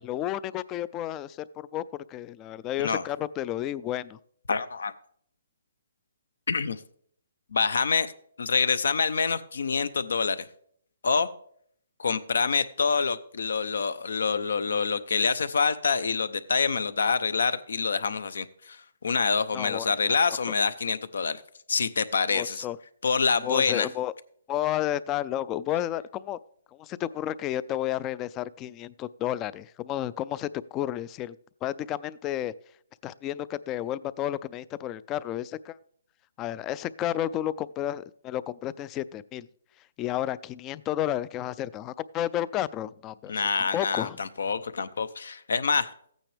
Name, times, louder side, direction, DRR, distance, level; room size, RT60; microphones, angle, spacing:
voice 1, 0.0-4.2 19.5-20.2 22.3-22.8 23.4-24.1 24.5-26.4 26.8-31.4 31.6-32.5 33.0-35.8 36.4-39.5 40.0-43.3 43.6-44.2, left 12 dB, 20° left, 19 dB, 0.3 m, -31 dB
voice 2, 4.5-4.9 6.5-6.8 7.5-8.1 8.4-10.5 11.0-11.3 12.0-18.8 19.0-21.4 21.7-22.7 23.0-23.9 43.3-45.9, left 5 dB, 80° left, 15 dB, 0.7 m, -26 dB
14.5 x 9.0 x 3.3 m, 0.64 s
hypercardioid pair, 160°, 0 cm